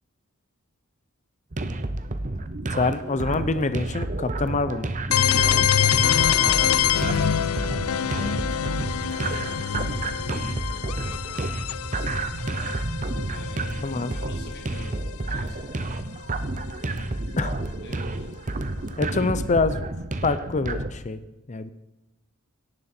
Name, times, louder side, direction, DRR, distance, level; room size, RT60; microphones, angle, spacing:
sound 1, 1.5-20.9, right 2 dB, 35° right, 0.8 m, -30 dB
voice 1, 2.7-4.9 13.8-14.1 17.4-17.5 19.0-19.8 20.2-21.2 21.5-21.7, left 3 dB, 35° left, 12 dB, 0.6 m, -25 dB
sound 2, 5.1-14.8, left 9 dB, 90° left, 0.5 m, -25 dB
voice 2, 5.7-7.5 13.3-14.9 15.2-15.7 17.4-17.5 17.8-18.3, left 2 dB, 50° left, 0 dB, 3.0 m, -43 dB
17.5 x 10.5 x 4.4 m, 0.98 s
head